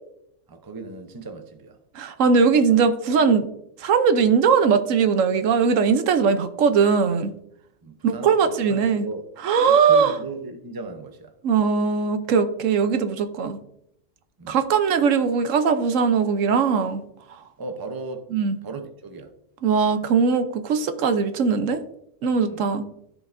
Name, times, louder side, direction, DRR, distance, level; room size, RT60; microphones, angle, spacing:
voice 1, 0.5-1.8 7.8-9.2 9.7-11.3 14.4-14.6 17.6-18.3 18.6-19.3 22.4-22.6, right 3 dB, 20° right, 0.6 m, -36 dB
voice 2, 1.9-3.5 3.8-7.3 8.0-9.0 9.4-10.1 11.4-13.6 14.5-17.0 18.3-18.5 19.6-21.8 22.2-22.8, right 6 dB, 80° right, 1.1 m, -20 dB
14.0 x 5.1 x 2.6 m
omnidirectional pair, 1.3 m